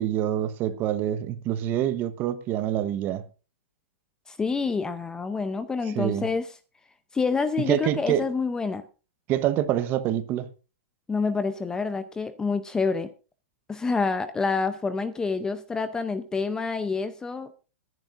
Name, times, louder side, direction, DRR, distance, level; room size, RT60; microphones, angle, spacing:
voice 1, 0.0-3.2 5.9-6.3 7.7-8.3 9.3-10.5, right 11 dB, 30° right, 1.0 m, -26 dB
voice 2, 4.3-6.5 7.1-8.8 11.1-13.1 13.7-17.5, left 4 dB, 10° left, 0.6 m, -27 dB
23.0 x 11.0 x 2.6 m
hypercardioid pair, 150°, 7 cm